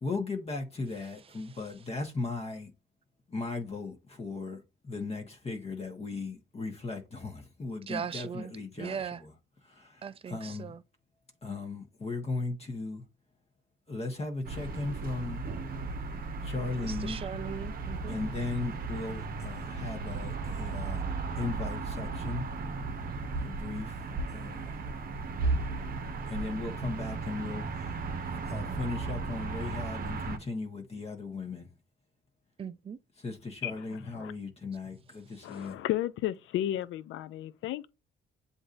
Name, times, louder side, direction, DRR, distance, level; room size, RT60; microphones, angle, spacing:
voice 1, 0.0-2.7 3.3-9.3 9.6-10.7 11.4-13.0 13.9-15.4 16.4-17.2 18.1-21.0 21.4-22.5 23.4-24.8 26.3-28.0 28.3-31.7 33.2-35.8, left 3 dB, 30° left, 1.1 m, -37 dB
voice 2, 7.9-8.5 8.8-9.2 10.0-10.8 16.8-18.2 32.6-33.0, right 7 dB, 30° right, 0.4 m, -38 dB
sound 1, 14.4-30.4, right 3 dB, 45° right, 0.8 m, -35 dB
voice 3, 35.4-37.9, left 13 dB, 80° left, 0.4 m, -33 dB
7.8 x 2.7 x 2.5 m
cardioid pair, 90°, 20 cm